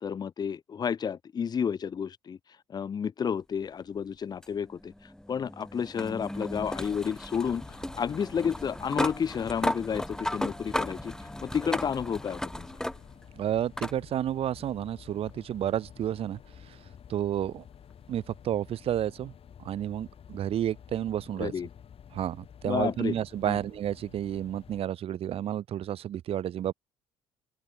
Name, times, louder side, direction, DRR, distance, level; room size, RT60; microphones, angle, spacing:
voice 1, 0.0-2.4 2.7-4.9 5.3-7.6 7.9-11.1 11.4-12.7 21.4-21.7 22.6-23.2 23.4-23.6, left 7 dB, 30° left, 0.5 m, -31 dB
sound 1, 4.4-13.3 13.8-14.0 15.3-15.4 18.3-18.4, left 1 dB, 5° left, 1.3 m, -35 dB
sound 2, 7.4-24.8, left 8 dB, 50° left, 5.8 m, -51 dB
voice 2, 13.3-16.4 16.7-16.8 17.1-17.6 18.1-19.3 19.6-21.5 22.1-26.7, right 11 dB, 50° right, 0.7 m, -31 dB
open air
hypercardioid pair, 50°, 13 cm